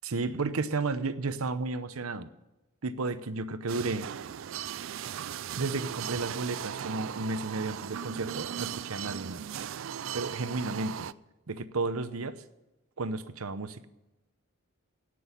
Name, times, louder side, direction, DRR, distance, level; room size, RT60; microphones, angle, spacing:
voice 1, 0.0-2.3 2.8-4.1 5.6-9.5 10.1-11.1 11.5-12.4 13.0-13.9, right 3 dB, 90° right, 13 dB, 0.8 m, -33 dB
sound 1, 3.7-11.1, right 9 dB, 65° right, 0.4 m, -38 dB
17.0 x 6.2 x 9.7 m, 1.0 s
head